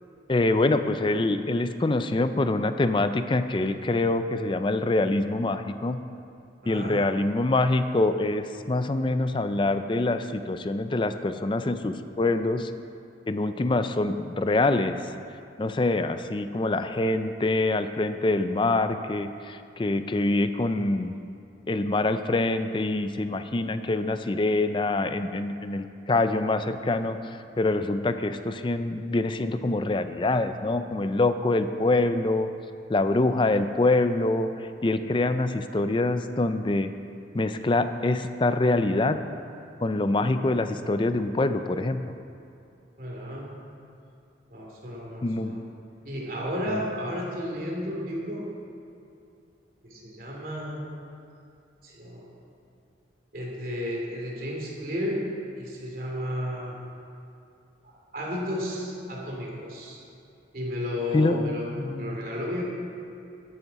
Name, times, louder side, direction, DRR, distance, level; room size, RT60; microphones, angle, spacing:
voice 1, 0.3-6.0 6.7-12.7 13.3-15.0 15.6-21.1 21.7-32.5 32.9-36.9 37.3-39.2 39.8-42.0 45.2-45.6 46.7-46.8 61.1-62.2, left 2 dB, 30° left, 10 dB, 0.4 m, -25 dB
voice 2, 6.6-7.0 43.0-43.6 44.5-45.6 46.0-48.5 49.8-50.9 51.8-52.4 53.3-55.3 55.6-56.8 57.8-60.0 60.5-62.6, left 1 dB, 55° right, -2 dB, 2.8 m, -33 dB
13.5 x 11.0 x 4.2 m, 2.6 s
head